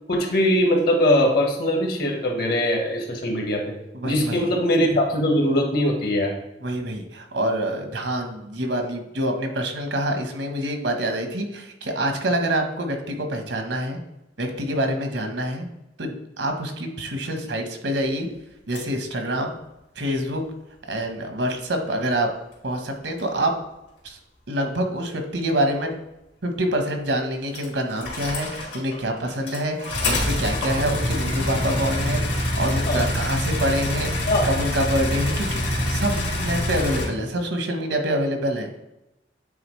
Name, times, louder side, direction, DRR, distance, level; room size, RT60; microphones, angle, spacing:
voice 1, 0.1-3.7 4.0-6.4 32.9-33.0 34.3-34.5, left 1 dB, 60° left, 3 dB, 1.2 m, -21 dB
voice 2, 3.9-4.5 6.6-14.0 14.4-15.7 16.0-18.3 18.7-19.5 19.9-20.4 20.9-22.3 22.6-23.5 24.0-24.2 24.5-26.0 26.4-32.2 32.6-35.6 35.9-38.7, right 1 dB, 85° right, 5 dB, 1.1 m, -26 dB
sound 1, 18.7-18.8 23.2-23.3 27.5-29.0 29.3-37.0, left 1 dB, 75° left, 2.0 m, -25 dB
8.7 x 3.9 x 3.1 m, 0.90 s
head